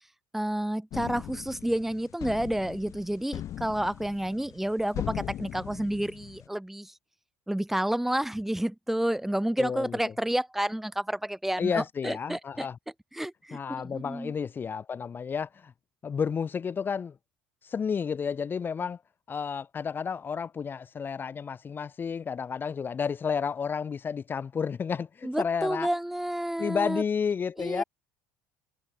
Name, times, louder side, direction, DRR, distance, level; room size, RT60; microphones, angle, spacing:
voice 1, 0.3-6.9 7.5-12.7 13.1-14.3 25.2-27.0 27.6-27.8, right 1 dB, 5° right, 0.6 m, -30 dB
sound 1, 0.9-6.5, left 11 dB, 55° left, 1.9 m, -39 dB
voice 2, 9.6-10.1 11.6-12.8 13.5-15.7 16.0-17.1 17.6-19.0 19.3-25.9 26.6-27.8, left 6 dB, 35° left, 0.9 m, -31 dB
hypercardioid pair, 70°, 6 cm